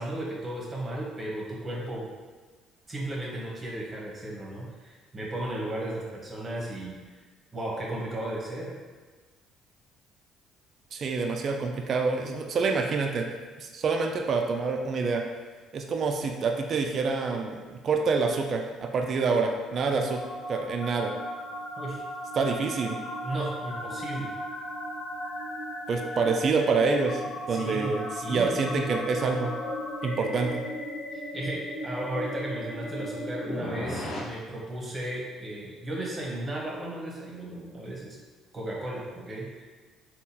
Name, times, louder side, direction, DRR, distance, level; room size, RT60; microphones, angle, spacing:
voice 1, 0.0-2.1 2.9-7.2 7.5-8.7 19.9-20.0 21.8-22.0 23.2-24.3 27.5-28.5 31.1-38.2 38.5-39.6, right 1 dB, 25° right, -4 dB, 1.0 m, -35 dB
voice 2, 10.9-13.3 13.6-15.2 15.7-20.2 20.5-21.1 22.4-23.0 25.9-29.5 30.0-30.6, right 4 dB, 50° right, 3 dB, 0.3 m, -27 dB
sound 1, 19.1-34.2, left 1 dB, 65° left, 0.7 m, -36 dB
3.6 x 2.3 x 2.7 m, 1.4 s
supercardioid pair, 75°, 0 cm